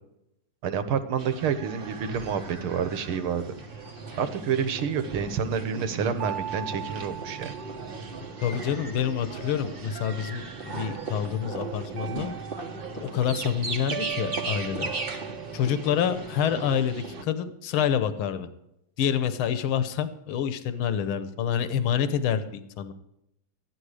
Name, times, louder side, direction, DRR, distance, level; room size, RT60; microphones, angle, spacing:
voice 1, 0.6-3.4 4.2-7.5, right 7 dB, 80° right, 10 dB, 1.9 m, -28 dB
sound 1, 1.2-17.2, right 3 dB, 35° right, 1.0 m, -37 dB
sound 2, 6.2-8.5 9.9-11.0 12.0-13.2 13.9-16.3, right 10 dB, 55° right, 1.2 m, -40 dB
voice 2, 8.4-12.3 12.9-14.9 15.5-18.5 19.0-22.9, left 8 dB, 75° left, 11 dB, 1.7 m, -27 dB
14.0 x 11.0 x 4.9 m, 0.83 s
omnidirectional pair, 2.3 m